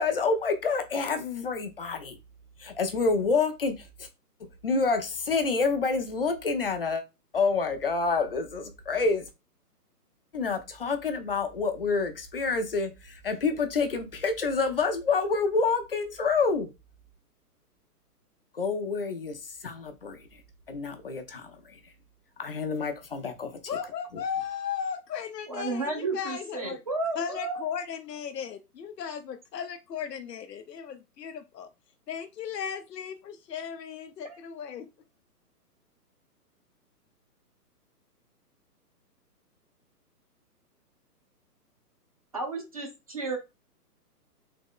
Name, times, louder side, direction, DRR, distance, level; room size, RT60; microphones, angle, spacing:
voice 1, 0.0-2.2 2.6-3.8 4.6-7.0 7.3-9.3 10.3-16.7 18.5-20.2 20.7-21.8 22.4-24.2, left 4 dB, 40° left, 0.5 m, -28 dB
voice 2, 23.7-26.8 27.2-31.7 32.1-34.9, left 7 dB, 90° left, 0.8 m, -36 dB
voice 3, 25.5-27.6 34.2-34.4 42.3-43.4, right 3 dB, 25° right, 0.6 m, -32 dB
3.8 x 2.9 x 3.7 m
hypercardioid pair, 160°, 47 cm